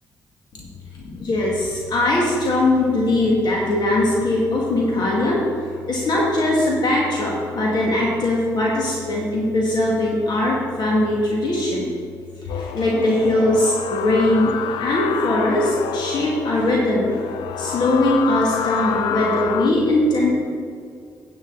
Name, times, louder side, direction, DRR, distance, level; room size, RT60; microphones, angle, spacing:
voice 1, 0.9-5.4 5.8-11.9 12.4-14.5 14.8-17.2 17.6-20.4, left 1 dB, 65° left, -4 dB, 1.9 m, -20 dB
sound 1, 12.5-19.7, left 8 dB, 85° left, 0.5 m, -28 dB
9.6 x 8.8 x 4.0 m, 2.3 s
supercardioid pair, 60°, 8 cm